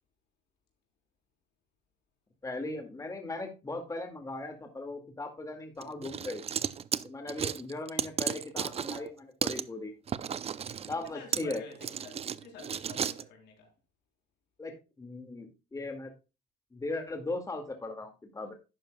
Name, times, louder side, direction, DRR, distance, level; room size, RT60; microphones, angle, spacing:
voice 1, 2.4-6.4 7.0-9.9 10.9-11.6 14.6-16.1 16.7-18.5, left 2 dB, 20° left, 2.1 m, -38 dB
sound 1, 5.8-9.1 9.4-9.6 10.1-13.2, right 8 dB, 35° right, 0.5 m, -34 dB
voice 2, 10.5-13.7, left 5 dB, 80° left, 3.9 m, -50 dB
11.5 x 9.0 x 2.3 m
cardioid pair, 100°, 17 cm